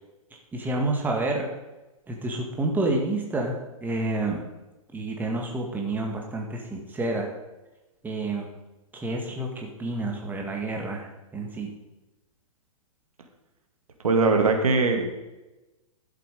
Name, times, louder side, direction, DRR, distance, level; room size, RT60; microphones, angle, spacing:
voice 1, 0.5-1.5 2.1-3.5 3.8-4.4 4.9-7.3 8.0-8.5 8.9-9.5 9.8-11.1 11.3-11.7, right 2 dB, 10° right, 1 dB, 2.0 m, -28 dB
voice 2, 14.0-15.2, right 3 dB, 75° right, 4 dB, 2.2 m, -21 dB
12.0 x 7.7 x 5.2 m, 1.1 s
hypercardioid pair, 120°, 18 cm